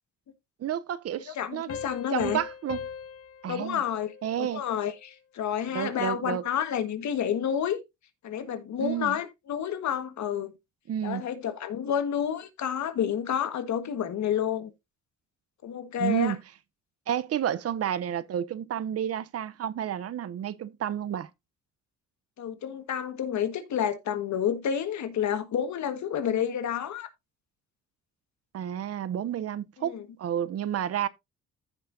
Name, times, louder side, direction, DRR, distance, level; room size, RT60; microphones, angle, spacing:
voice 1, 0.6-1.7 2.1-2.8 3.4-3.8 4.2-4.6 5.7-6.4 8.8-9.2 10.9-11.2 16.0-16.4 17.1-21.3 28.5-31.1, right 10 dB, 55° right, 0.7 m, -30 dB
voice 2, 1.3-2.4 3.5-7.8 8.2-10.5 11.0-14.7 15.6-16.3 22.4-27.1 29.8-30.0, left 9 dB, 65° left, 1.5 m, -30 dB
sound 1, 1.7-5.0, left 7 dB, 50° left, 1.0 m, -40 dB
15.0 x 5.4 x 2.6 m
cardioid pair, 90°, 30 cm